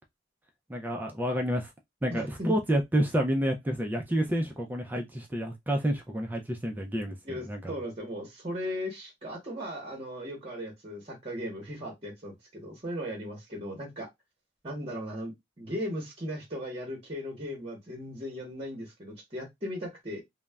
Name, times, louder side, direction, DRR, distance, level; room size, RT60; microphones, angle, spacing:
voice 1, 0.7-1.7 2.0-7.7, equal, 10° right, 0.3 m, -29 dB
voice 2, 2.1-2.6 7.3-14.1 14.6-20.2, equal, 30° right, 0.8 m, -37 dB
2.3 x 2.0 x 3.2 m
head